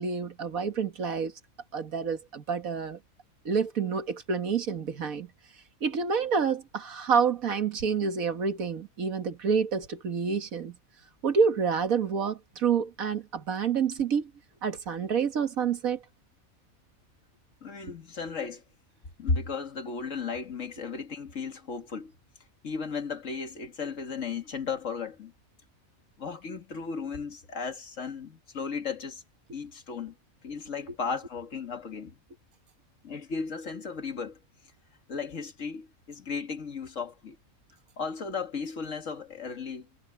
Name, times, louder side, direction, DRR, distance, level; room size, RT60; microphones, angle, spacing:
voice 1, 0.0-1.3 1.7-3.0 3.5-5.3 5.8-10.8 11.2-14.3 14.6-16.0 17.9-18.0, right 6 dB, 85° right, 2.0 m, -28 dB
voice 2, 17.6-18.6 19.2-22.1 22.6-25.3 26.2-29.2 29.5-30.1 30.4-32.2 33.0-34.4 35.1-37.4 38.0-39.9, left 5 dB, 65° left, 2.2 m, -35 dB
omnidirectional pair, 1.4 m